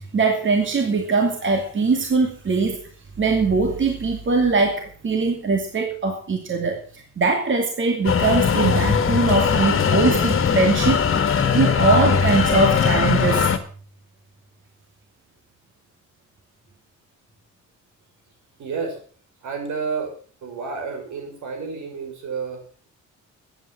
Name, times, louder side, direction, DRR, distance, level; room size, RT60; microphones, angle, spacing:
voice 1, 0.0-2.9 3.2-13.5, right 3 dB, 40° right, 4 dB, 2.7 m, -21 dB
sound 1, 8.1-13.6, left 6 dB, 45° left, 1.9 m, -20 dB
voice 2, 18.6-19.0 19.4-20.1 20.4-22.9, right 5 dB, 75° right, 4 dB, 5.9 m, -30 dB
13.5 x 9.5 x 7.3 m, 0.43 s
cardioid pair, 90°, 30 cm